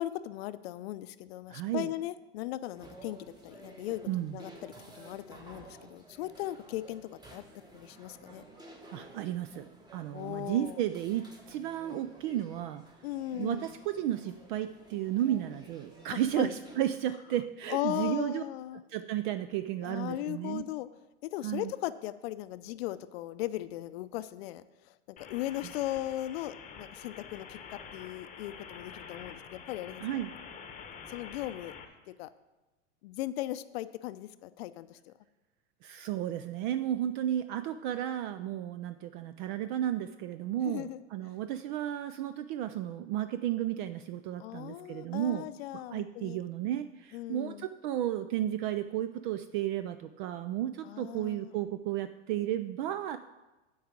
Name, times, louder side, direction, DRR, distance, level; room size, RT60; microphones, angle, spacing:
voice 1, 0.0-7.4 7.7-8.4 10.1-10.8 13.0-13.7 16.1-16.6 17.7-18.8 19.7-20.9 21.2-24.9 25.3-30.2 31.1-31.7 32.1-32.3 33.0-35.1 40.6-41.0 44.4-46.4 47.1-47.7 50.8-51.5, left 15 dB, 60° left, 14 dB, 0.6 m, -38 dB
voice 2, 1.5-1.9 4.1-4.3 8.9-9.7 9.9-12.8 13.4-18.4 18.9-20.6 21.4-21.7 30.0-30.3 35.8-45.5 45.9-53.2, right 12 dB, 45° right, 11 dB, 0.4 m, -33 dB
sound 1, 2.7-16.8, right 2 dB, 10° right, 1.2 m, -53 dB
sound 2, 25.2-31.8, left 6 dB, 20° left, 1.0 m, -47 dB
8.7 x 4.7 x 7.3 m, 1.1 s
hypercardioid pair, 120°, 35 cm